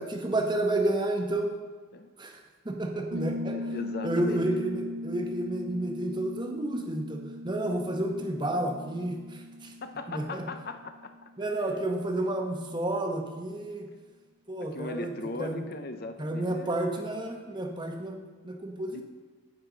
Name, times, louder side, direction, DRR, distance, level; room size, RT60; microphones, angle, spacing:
voice 1, 0.0-1.5 2.2-2.4 2.6-3.6 4.0-9.7 10.1-10.4 11.4-13.9 14.5-15.1 15.4-15.6 16.2-18.2 18.4-19.0, right 1 dB, 20° right, 3 dB, 1.0 m, -30 dB
Piano, 3.1-11.6, left 1 dB, 80° right, 0.8 m, -39 dB
voice 2, 3.5-4.5 9.8-11.1 11.6-11.7 14.6-16.8 18.9-19.0, left 3 dB, 45° left, 7 dB, 0.6 m, -39 dB
9.9 x 8.8 x 3.9 m, 1.5 s
head